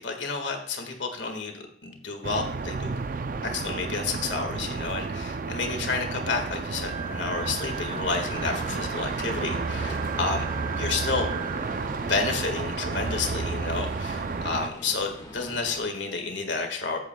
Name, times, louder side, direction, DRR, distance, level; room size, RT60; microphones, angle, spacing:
voice 1, 0.0-3.0 3.4-10.4 10.7-11.3 11.9-17.0, left 4 dB, 75° left, 4 dB, 1.8 m, -30 dB
sound 1, 2.2-14.7, right 4 dB, 45° right, 0.4 m, -31 dB
Wind instrument woodwind instrument, 6.6-12.0, right 7 dB, 15° right, 1.9 m, -41 dB
Gunshot gunfire, 7.9-15.8, equal, 20° left, 1.6 m, -43 dB
14.5 x 8.4 x 2.3 m, 0.67 s
head